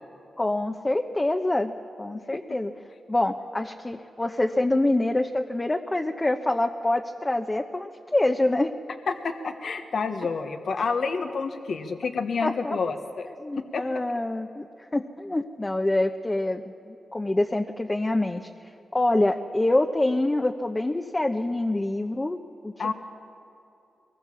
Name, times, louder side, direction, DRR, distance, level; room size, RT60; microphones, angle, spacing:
voice 1, 0.4-1.7 2.0-2.7 3.1-8.7 12.4-12.8 13.4-14.7 14.9-18.5 18.9-22.4 22.6-22.9, left 2 dB, 20° left, 4 dB, 0.9 m, -26 dB
voice 2, 9.1-13.3 13.7-14.0 22.8-22.9, left 4 dB, 65° left, 6 dB, 1.1 m, -29 dB
23.0 x 20.5 x 7.0 m, 2.8 s
cardioid pair, 65°, 0 cm